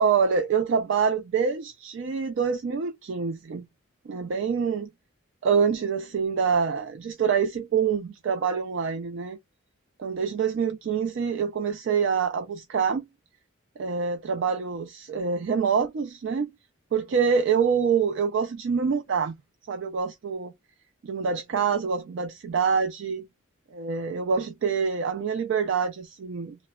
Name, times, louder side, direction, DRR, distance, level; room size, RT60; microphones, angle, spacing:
voice 1, 0.0-3.6 4.1-4.9 5.4-9.4 10.0-13.1 13.8-16.5 16.9-19.3 19.7-20.5 21.0-23.2 23.7-26.6, right 6 dB, 60° right, 0.3 m, -26 dB
3.0 x 2.0 x 2.2 m
head